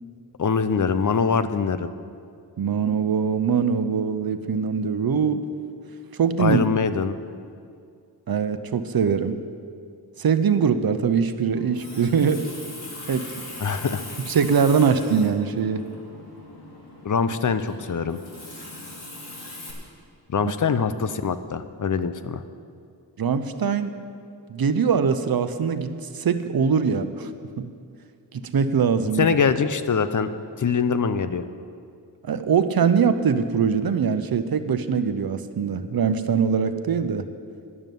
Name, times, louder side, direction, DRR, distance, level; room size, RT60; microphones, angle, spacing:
voice 1, 0.4-1.9 6.4-7.1 13.6-14.0 17.0-18.2 20.3-22.4 29.2-30.3 30.6-31.4, left 6 dB, 45° left, 11 dB, 0.7 m, -23 dB
voice 2, 2.6-5.5 6.1-6.6 8.3-9.4 10.2-12.5 13.1-13.3 14.3-15.8 20.4-20.5 23.2-23.9 24.5-27.3 27.6-27.7 28.3-29.3 32.2-37.3, right 6 dB, 55° right, 10 dB, 0.8 m, -22 dB
Water tap faucet, 11.5-19.7, left 2 dB, 65° left, 2.8 m, -40 dB
11.0 x 6.7 x 9.2 m, 2.3 s
cardioid pair, 55°, 43 cm